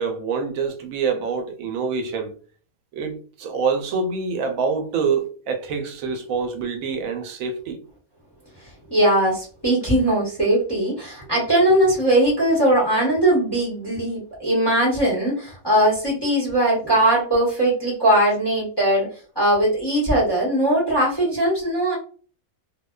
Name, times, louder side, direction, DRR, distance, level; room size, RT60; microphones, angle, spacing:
voice 1, 0.0-2.4 2.9-7.8, right 5 dB, 75° right, 1.0 m, -26 dB
voice 2, 8.6-22.0, right 1 dB, 20° left, 0.9 m, -20 dB
2.6 x 2.1 x 2.2 m
omnidirectional pair, 1.5 m